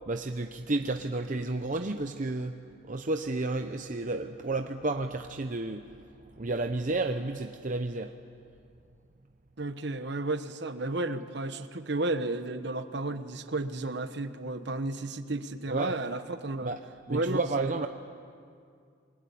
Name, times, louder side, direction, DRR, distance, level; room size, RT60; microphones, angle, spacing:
voice 1, 0.1-2.5 2.8-5.9 6.4-8.1 15.7-16.0 16.6-16.8 17.1-17.9, right 2 dB, 40° right, 6 dB, 0.7 m, -31 dB
voice 2, 9.6-16.7 17.1-17.7, right 2 dB, 60° right, 10 dB, 1.2 m, -33 dB
28.0 x 22.0 x 8.6 m, 2.3 s
head